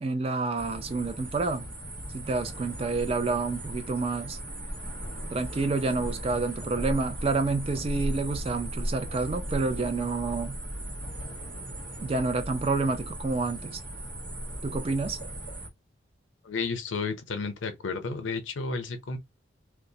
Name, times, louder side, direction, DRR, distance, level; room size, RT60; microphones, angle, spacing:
voice 1, 0.0-1.7 2.1-4.4 5.3-10.6 12.0-13.8 14.6-15.2, right 3 dB, 30° right, 0.4 m, -29 dB
Bats Houston, 0.6-15.7, right 1 dB, 60° right, 1.1 m, -37 dB
voice 2, 16.4-19.2, left 4 dB, 90° left, 0.6 m, -32 dB
2.2 x 2.0 x 2.7 m
head